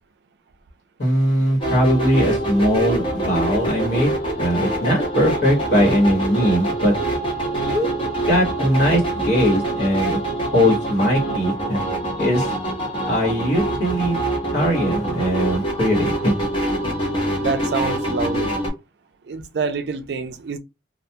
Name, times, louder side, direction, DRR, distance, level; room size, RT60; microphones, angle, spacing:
voice 1, 1.0-4.1 4.4-6.9 7.7-7.9 8.3-10.2 10.5-11.8 12.2-12.5 13.1-14.2 14.5-16.3, equal, 60° left, 1.2 m, -20 dB
sound 1, 1.6-18.7, right 1 dB, 25° left, 0.7 m, -25 dB
voice 2, 17.4-18.6 19.3-20.6, right 5 dB, 60° right, 0.4 m, -26 dB
2.3 x 2.2 x 2.8 m
head